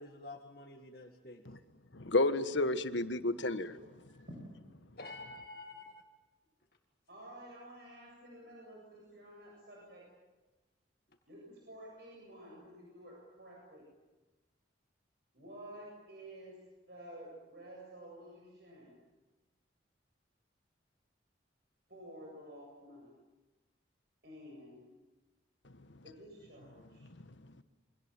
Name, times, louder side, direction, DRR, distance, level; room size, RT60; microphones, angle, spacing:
voice 1, 0.0-1.4 5.0-6.0 12.5-12.6, left 2 dB, 55° left, 3 dB, 2.1 m, -49 dB
voice 2, 1.9-3.8 27.2-27.3 27.6-27.7, left 2 dB, 80° left, 11 dB, 1.5 m, -31 dB
voice 3, 7.1-10.1 11.3-13.8 15.3-16.6 16.9-18.9 21.9-23.1 24.2-24.9 26.0-27.0, right 1 dB, 60° right, -2 dB, 7.8 m, -51 dB
28.5 x 25.0 x 7.6 m, 1.1 s
head